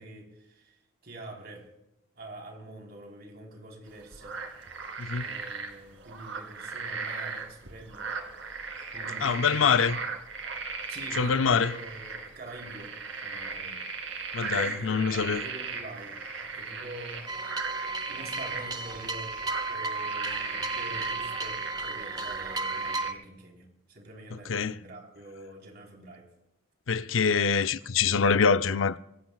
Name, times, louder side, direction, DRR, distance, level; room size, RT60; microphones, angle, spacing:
voice 1, 0.0-1.7 2.2-4.4 5.2-8.1 8.9-10.1 10.9-13.0 13.2-13.8 14.5-16.1 16.4-19.4 19.7-26.3, right 1 dB, 55° right, 4.0 m, -45 dB
sound 1, 3.9-23.1, right 4 dB, 80° right, 2.3 m, -37 dB
voice 2, 9.2-10.0 11.2-11.7 14.3-15.4 24.5-24.7 26.9-29.0, left 5 dB, 85° left, 0.6 m, -24 dB
sound 2, 17.3-23.1, right 3 dB, 20° right, 0.8 m, -34 dB
24.5 x 17.5 x 2.4 m
head